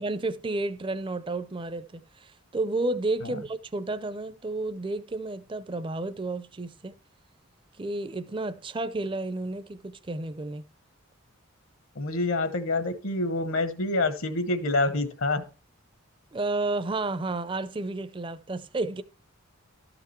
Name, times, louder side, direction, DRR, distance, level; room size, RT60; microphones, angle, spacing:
voice 1, 0.0-7.0 7.8-10.6 16.3-19.0, right 2 dB, 25° right, 0.4 m, -31 dB
voice 2, 11.9-15.4, left 2 dB, 70° left, 1.2 m, -27 dB
12.5 x 5.9 x 4.4 m
head